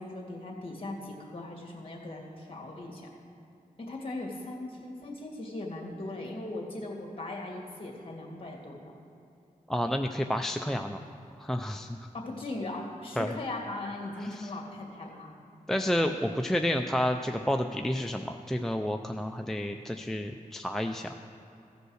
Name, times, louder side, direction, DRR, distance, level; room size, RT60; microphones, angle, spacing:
voice 1, 0.0-3.1 3.8-8.8 12.1-15.4, left 2 dB, 40° left, 0 dB, 2.1 m, -39 dB
voice 2, 9.7-11.0 11.4-12.0 13.2-13.4 14.2-14.5 15.7-21.1, equal, 5° left, 5 dB, 0.4 m, -30 dB
15.0 x 5.3 x 6.4 m, 2.8 s
wide cardioid pair, 90°, 14 cm